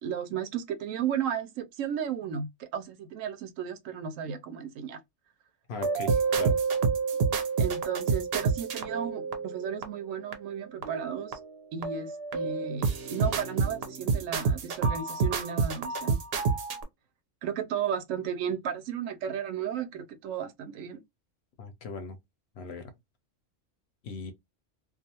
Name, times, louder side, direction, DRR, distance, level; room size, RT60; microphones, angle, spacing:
voice 1, 0.0-5.0 7.6-11.4 11.7-16.2 17.4-21.0, right 8 dB, 85° right, 1.0 m, -34 dB
voice 2, 5.7-6.6 21.6-22.2 22.6-22.9 24.0-24.3, left 4 dB, 65° left, 0.8 m, -38 dB
sound 1, 5.8-9.8 10.3-10.4 10.8-11.5 11.8-16.8, right 5 dB, 60° right, 0.8 m, -28 dB
2.4 x 2.3 x 2.8 m
omnidirectional pair, 1.3 m